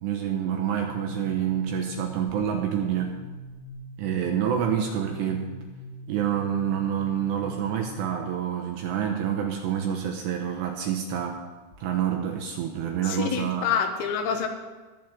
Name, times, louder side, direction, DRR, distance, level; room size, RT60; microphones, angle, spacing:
voice 1, 0.0-3.2 4.0-5.5 6.1-11.5 11.8-13.7, right 9 dB, 80° right, 2 dB, 2.6 m, -27 dB
sound 1, 1.5-8.4, equal, 60° left, 3.5 m, -42 dB
voice 2, 13.1-14.5, left 7 dB, 80° left, 5 dB, 3.3 m, -27 dB
21.5 x 7.8 x 3.7 m, 1.3 s
omnidirectional pair, 5.7 m